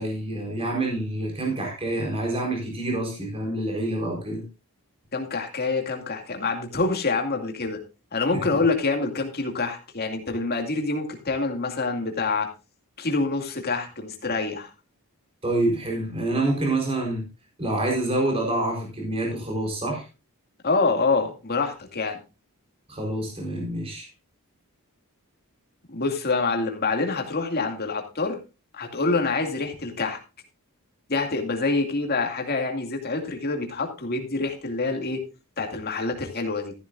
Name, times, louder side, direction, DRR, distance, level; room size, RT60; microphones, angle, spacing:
voice 1, 0.0-4.4 15.4-17.2 17.6-20.0 22.9-24.1, right 2 dB, 25° right, 0 dB, 4.3 m, -27 dB
voice 2, 5.1-7.8 8.1-12.5 13.0-14.7 20.6-22.2 25.9-28.4 28.7-30.2 31.1-35.2 35.6-36.7, left 3 dB, 45° left, 3 dB, 2.4 m, -26 dB
14.0 x 11.0 x 2.6 m, 0.29 s
head